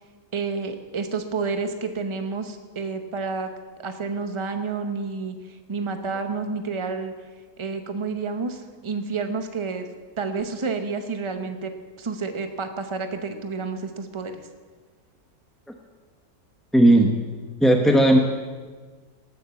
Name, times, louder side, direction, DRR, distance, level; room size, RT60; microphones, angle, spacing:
voice 1, 0.3-3.5 3.8-5.4 5.7-7.1 7.6-9.9 10.2-11.7 12.0-14.3, right 4 dB, 25° right, 7 dB, 0.8 m, -29 dB
voice 2, 16.7-17.1 17.6-18.2, right 1 dB, ahead, 2 dB, 0.5 m, -15 dB
18.5 x 7.2 x 7.0 m, 1.5 s
omnidirectional pair, 1.6 m